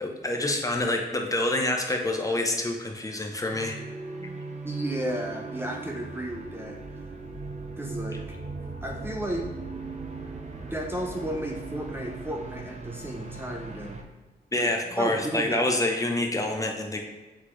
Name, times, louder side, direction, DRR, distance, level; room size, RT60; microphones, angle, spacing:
voice 1, 0.0-3.8 4.1-4.4 14.5-17.0, left 1 dB, 20° left, 2 dB, 0.9 m, -27 dB
sound 1, 3.5-14.0, right 3 dB, 45° right, 0.8 m, -39 dB
voice 2, 4.6-6.8 7.8-8.4 8.8-9.5 10.6-14.0 14.5-14.7 15.0-15.6, right 1 dB, 15° right, 1 dB, 0.7 m, -33 dB
8.1 x 4.0 x 3.2 m, 1.1 s
cardioid pair, 95°, 17 cm